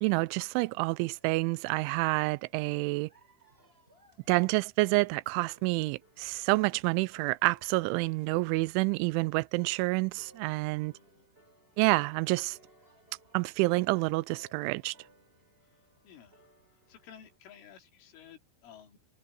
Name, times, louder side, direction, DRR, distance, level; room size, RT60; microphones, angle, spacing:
voice 1, 0.0-3.1 4.3-10.9 11.8-12.6 13.3-14.9, right 24 dB, 85° right, 2.9 m, -28 dB
sound 1, 0.7-17.4, right 1 dB, 10° right, 7.3 m, -64 dB
voice 2, 10.9-11.3 16.0-16.5 16.9-19.0, left 9 dB, 85° left, 5.3 m, -54 dB
omnidirectional pair, 5.5 m